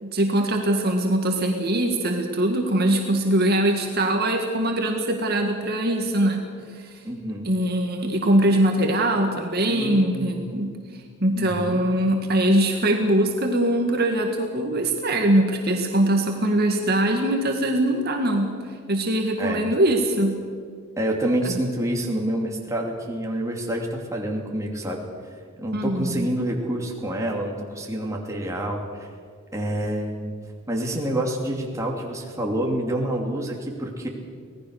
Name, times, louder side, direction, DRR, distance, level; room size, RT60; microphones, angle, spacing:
voice 1, 0.0-6.4 6.7-7.0 7.4-10.7 11.2-18.5 18.9-20.4 21.4-21.5 25.7-26.3, right 1 dB, 45° right, 2 dB, 2.0 m, -22 dB
voice 2, 7.0-7.5 9.7-10.4 11.3-11.8 19.4-19.7 21.0-25.0 25.6-29.1 29.5-30.3 30.7-34.1, right 1 dB, 15° right, -1 dB, 2.8 m, -27 dB
25.5 x 18.5 x 6.6 m, 2.1 s
head